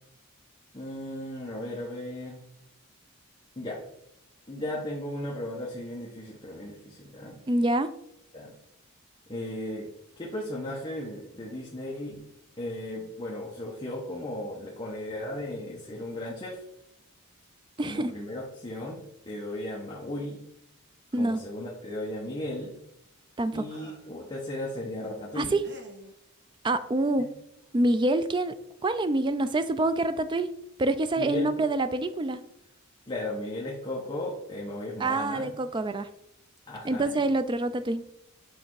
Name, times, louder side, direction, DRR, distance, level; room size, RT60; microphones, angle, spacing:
voice 1, 0.7-2.4 3.6-3.8 4.5-7.4 8.3-8.5 9.3-9.9 10.2-12.2 12.6-16.6 17.8-20.4 21.2-22.8 23.5-25.5 31.2-31.5 33.1-35.5 36.7-37.2, left 1 dB, 20° left, -4 dB, 1.0 m, -36 dB
voice 2, 7.5-7.9 17.8-18.1 21.1-21.4 23.4-23.6 25.4-25.6 26.6-27.3 27.7-28.5 28.8-30.5 30.8-32.4 35.0-36.1 36.8-38.0, right 2 dB, 20° right, 11 dB, 0.3 m, -26 dB
sound 1, 23.6-24.2 25.6-26.2 27.6-27.7 28.0-28.3, right 1 dB, 50° right, 0.9 m, -50 dB
6.4 x 3.4 x 4.7 m, 0.78 s
head